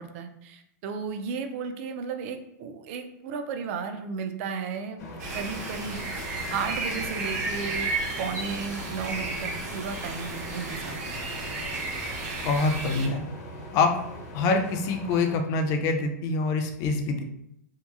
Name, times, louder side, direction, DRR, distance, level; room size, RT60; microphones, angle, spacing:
voice 1, 0.0-5.0 5.3-6.0 6.5-7.9 8.2-11.6, right 5 dB, 50° right, 7 dB, 0.3 m, -34 dB
sound 1, 5.0-15.4, left 1 dB, 80° left, 0.9 m, -41 dB
sound 2, 5.2-13.1, right 3 dB, 70° right, 0.8 m, -33 dB
voice 2, 12.4-13.2 13.7-13.9 14.3-17.2, left 3 dB, 35° left, 4 dB, 0.4 m, -25 dB
2.8 x 2.2 x 2.4 m, 0.76 s
hypercardioid pair, 140°, 9 cm